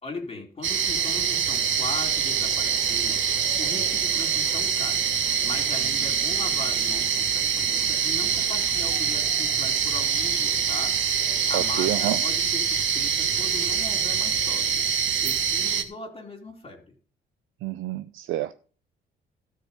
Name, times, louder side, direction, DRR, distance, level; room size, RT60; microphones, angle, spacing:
voice 1, 0.0-3.2 3.6-5.0 5.4-11.0 11.5-14.9 15.2-16.9, left 3 dB, 30° left, 0 dB, 2.9 m, -39 dB
sound 1, 0.6-15.8, right 7 dB, 70° right, 1.5 m, -24 dB
voice 2, 11.5-12.2 17.6-18.5, right 13 dB, 90° right, 11 dB, 0.5 m, -28 dB
13.0 x 4.7 x 8.1 m, 0.41 s
cardioid pair, 90°, 20 cm